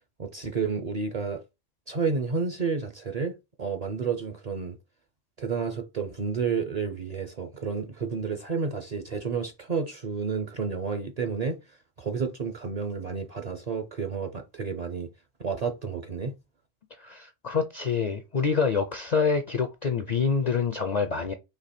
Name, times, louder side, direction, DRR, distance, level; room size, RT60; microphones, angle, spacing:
voice 1, 0.2-1.4 1.9-4.8 5.4-11.6 12.0-15.1 15.4-16.3, right 5 dB, 45° right, 0.5 m, -30 dB
voice 2, 17.0-21.3, left 5 dB, 55° left, 0.5 m, -26 dB
4.4 x 2.9 x 4.2 m
omnidirectional pair, 1.2 m